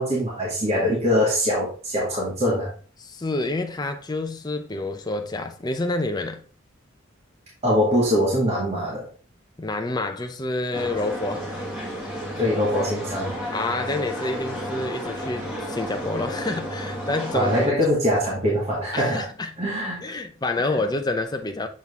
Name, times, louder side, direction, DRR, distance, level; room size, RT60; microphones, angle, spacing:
voice 1, 0.0-2.7 7.6-9.1 12.4-13.4 17.3-19.2 19.6-20.1 20.6-20.7, equal, 30° right, 2.0 m, -23 dB
voice 2, 3.0-6.4 9.6-11.5 13.5-17.7 18.9-19.5 20.0-21.7, left 2 dB, 20° left, 0.6 m, -28 dB
sound 1, 10.7-17.7, equal, 5° right, 1.8 m, -32 dB
7.4 x 3.9 x 3.6 m
head